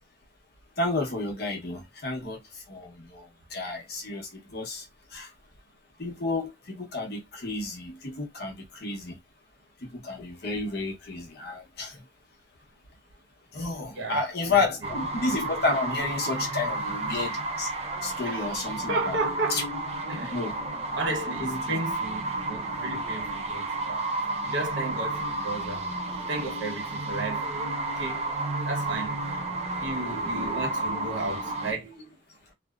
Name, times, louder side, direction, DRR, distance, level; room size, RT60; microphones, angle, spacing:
voice 1, 0.8-2.4 2.7-4.8 5.1-5.3 6.0-9.2 9.8-12.0 13.5-17.7 18.0-19.2 19.5-19.6 20.3-20.6 21.4-21.8, left 3 dB, 55° left, 0.8 m, -31 dB
voice 2, 13.9-14.6 18.2-18.5 18.9-19.7 20.1-20.4 20.9-24.1 24.4-25.9 26.3-29.4 29.8-32.2, right 2 dB, 80° right, 1.0 m, -34 dB
sound 1, 14.8-31.7, right 2 dB, 35° right, 0.5 m, -32 dB
2.6 x 2.1 x 2.3 m
head